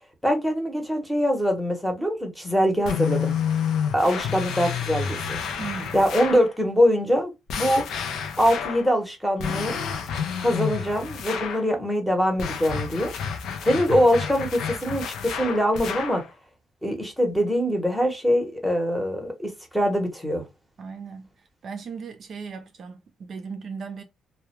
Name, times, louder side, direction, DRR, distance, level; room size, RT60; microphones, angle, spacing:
voice 1, 0.2-3.3 3.9-5.4 5.9-7.8 8.4-9.8 10.4-13.1 13.6-16.2 16.8-20.4, equal, ahead, 0.8 m, -23 dB
sound 1, 2.8-6.5 7.5-8.9 9.4-11.7 12.4-16.3, left 7 dB, 80° left, 0.4 m, -30 dB
voice 2, 5.6-5.9 20.8-21.3 21.6-24.0, right 5 dB, 55° right, 0.4 m, -37 dB
2.3 x 2.1 x 2.9 m
cardioid pair, 90°, 0 cm